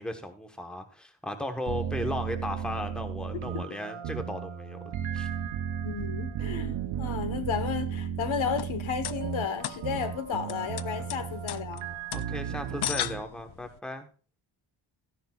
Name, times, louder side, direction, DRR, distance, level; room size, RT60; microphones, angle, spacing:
voice 1, 0.0-5.3 12.1-14.1, left 1 dB, ahead, 1.1 m, -36 dB
sound 1, 1.7-13.2, right 8 dB, 80° right, 0.8 m, -34 dB
voice 2, 5.8-11.8, left 7 dB, 75° left, 1.3 m, -33 dB
sound 2, 8.4-13.8, left 11 dB, 55° left, 0.5 m, -37 dB
14.0 x 10.0 x 2.3 m
wide cardioid pair, 115°, 48 cm